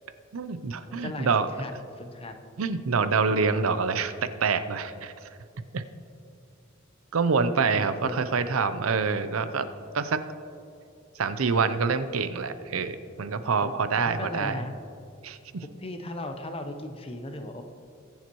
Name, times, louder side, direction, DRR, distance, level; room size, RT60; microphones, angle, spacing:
voice 1, 0.3-1.5 2.6-5.1 5.7-5.8 7.1-9.7 9.9-10.2 11.2-14.6 15.2-15.6, right 5 dB, 90° right, 11 dB, 0.6 m, -26 dB
voice 2, 0.9-1.3 1.6-2.3 7.7-8.2 13.6-14.7 15.8-17.6, left 1 dB, 30° left, 6 dB, 0.8 m, -37 dB
20.5 x 7.2 x 3.0 m, 2.5 s
head